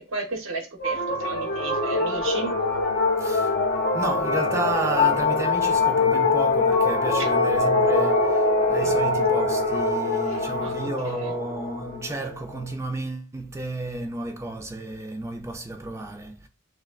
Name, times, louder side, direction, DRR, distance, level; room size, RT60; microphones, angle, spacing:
voice 1, 0.1-2.5 8.8-8.9 10.3-11.3, right 3 dB, 65° right, 1.0 m, -34 dB
sound 1, 0.8-12.6, left 3 dB, 45° left, 0.6 m, -23 dB
voice 2, 3.2-3.5 3.9-16.5, right 2 dB, 15° right, 0.4 m, -32 dB
6.0 x 2.1 x 2.4 m
head